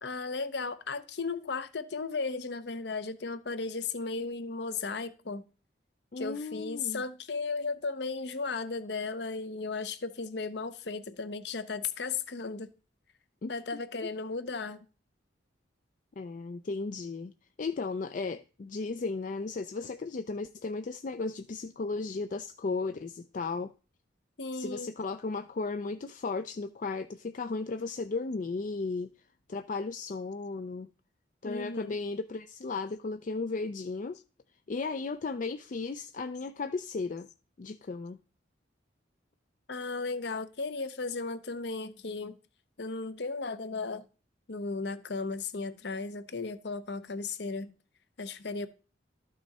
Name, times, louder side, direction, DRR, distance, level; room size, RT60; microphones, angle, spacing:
voice 1, 0.0-5.4 6.2-12.7 13.5-14.9 24.4-24.9 31.4-32.0 39.7-42.4 42.8-44.0 44.5-47.7 48.2-48.7, left 4 dB, 65° left, 0.8 m, -35 dB
voice 2, 6.1-7.0 13.4-14.1 16.2-17.3 17.6-23.7 24.5-29.1 29.5-30.9 31.4-34.2 34.7-37.3 37.6-38.2, left 3 dB, 45° left, 0.4 m, -35 dB
12.5 x 6.2 x 4.2 m
head